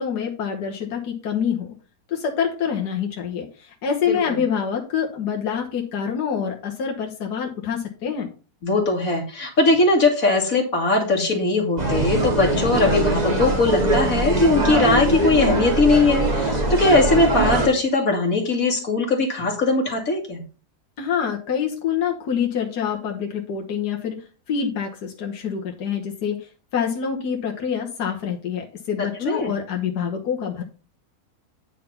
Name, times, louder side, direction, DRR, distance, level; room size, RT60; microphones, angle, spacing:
voice 1, 0.0-1.7 2.1-8.3 21.0-24.2 24.5-30.6, left 7 dB, 80° left, 1 dB, 1.7 m, -26 dB
voice 2, 8.6-20.4 29.2-29.5, left 3 dB, 60° left, 0 dB, 2.5 m, -20 dB
sound 1, 11.8-17.7, right 2 dB, 25° right, 1.8 m, -22 dB
9.2 x 4.0 x 5.5 m, 0.35 s
omnidirectional pair, 1.7 m